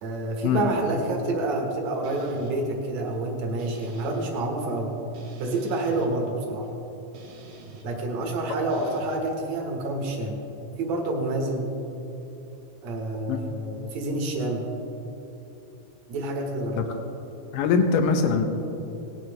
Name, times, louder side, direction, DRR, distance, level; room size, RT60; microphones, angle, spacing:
voice 1, 0.0-5.0 5.4-6.7 7.8-10.4 10.8-11.7 12.8-14.7 16.1-17.0, right 2 dB, 60° right, 0 dB, 2.5 m, -28 dB
sound 1, 2.0-2.5 3.6-4.3 5.1-6.1 7.1-7.9 8.7-9.2, right 4 dB, 85° right, 3.0 m, -46 dB
voice 2, 17.5-18.5, left 5 dB, 90° left, 6 dB, 2.5 m, -22 dB
18.5 x 9.2 x 3.3 m, 2.9 s
omnidirectional pair, 3.8 m